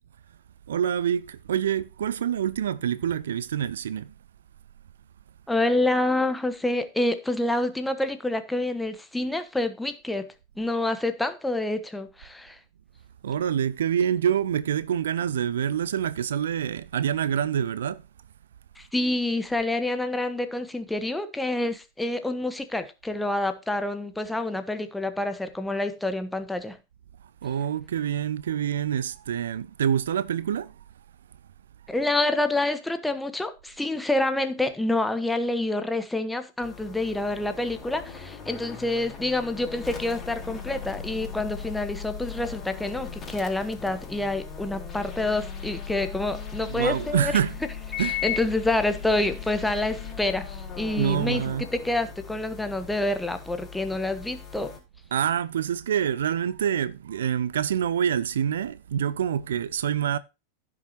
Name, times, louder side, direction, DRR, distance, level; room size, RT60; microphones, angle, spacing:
voice 1, 0.7-4.1 13.2-18.0 27.4-30.7 46.7-47.6 48.0-48.2 51.0-51.6 55.1-60.2, right 9 dB, 65° right, 0.4 m, -26 dB
voice 2, 5.5-10.3 10.6-12.6 18.8-26.8 31.9-47.4 48.0-54.7, left 2 dB, 5° left, 1.1 m, -27 dB
sound 1, 36.6-54.8, left 7 dB, 20° left, 4.1 m, -38 dB
15.0 x 6.2 x 2.8 m
figure-of-eight pair, 90°, 0 cm